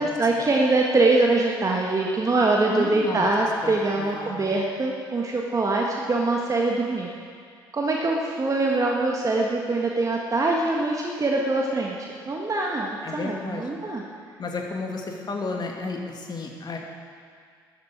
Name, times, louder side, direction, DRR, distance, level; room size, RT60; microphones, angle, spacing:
voice 1, 0.0-7.1 7.7-14.0, right 2 dB, 30° right, -1 dB, 1.6 m, -23 dB
voice 2, 2.7-3.3 3.6-4.5 13.0-13.6 14.4-16.8, left 3 dB, 40° left, 1 dB, 2.3 m, -32 dB
13.0 x 8.2 x 8.6 m, 2.1 s
figure-of-eight pair, 50°, 11 cm